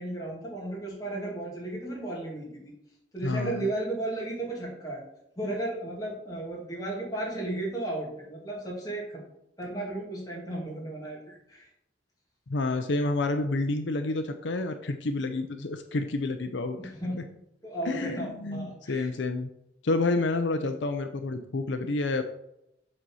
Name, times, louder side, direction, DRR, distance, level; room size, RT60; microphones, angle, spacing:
voice 1, 0.0-2.7 3.1-5.0 5.4-9.2 9.6-11.7 16.8-17.1 17.6-19.1, right 2 dB, 20° left, -3 dB, 2.6 m, -34 dB
voice 2, 3.2-3.7 12.5-16.9 17.8-19.5 19.8-22.2, left 2 dB, 75° left, 7 dB, 0.6 m, -29 dB
7.6 x 4.1 x 6.3 m, 0.80 s
head